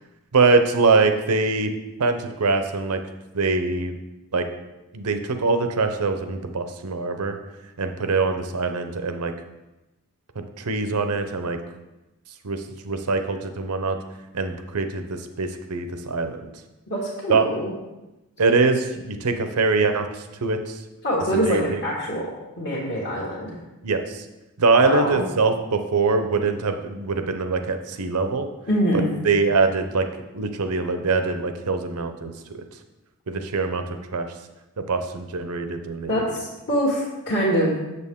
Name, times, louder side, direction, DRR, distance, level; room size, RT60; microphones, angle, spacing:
voice 1, 0.3-1.7 2.0-3.0 3.3-4.0 4.3-4.5 4.9-7.4 7.8-9.3 10.6-11.6 12.4-14.0 14.3-16.5 17.3-17.5 18.4-20.8 21.4-21.6 23.8-24.2 24.6-28.5 29.2-30.1 30.3-32.6 33.3-33.8 34.1-34.3 34.9-36.1, right 4 dB, 85° right, 7 dB, 0.7 m, -23 dB
voice 2, 16.9-17.7 21.0-22.2 22.6-23.5 24.8-25.2 28.7-29.1 36.1-37.8, equal, 50° left, -7 dB, 1.3 m, -24 dB
6.8 x 6.7 x 3.6 m, 1.0 s
head